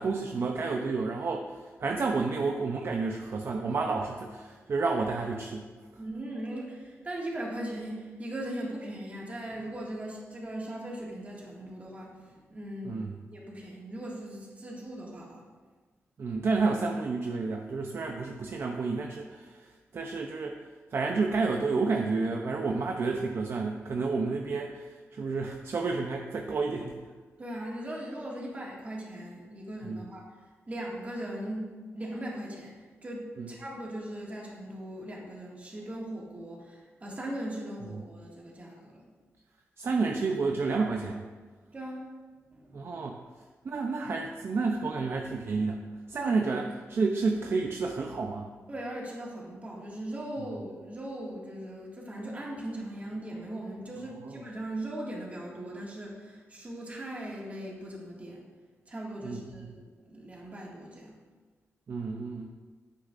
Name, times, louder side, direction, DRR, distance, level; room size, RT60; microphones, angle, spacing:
voice 1, 0.0-1.5 1.8-5.7 5.9-6.0 12.8-13.2 16.2-20.6 20.9-27.0 29.9-30.0 33.4-33.5 37.9-38.0 39.8-41.2 42.7-43.2 43.6-48.5 54.2-54.4 59.2-59.7 61.9-62.5, right 4 dB, 55° right, 2 dB, 0.5 m, -30 dB
voice 2, 6.0-13.0 13.3-15.4 27.4-30.2 30.7-39.1 41.7-42.1 42.5-42.8 46.1-46.4 48.7-58.4 58.9-61.2, right 1 dB, 30° right, -3 dB, 1.9 m, -39 dB
9.6 x 8.4 x 2.5 m, 1.4 s
wide cardioid pair, 135°, 5 cm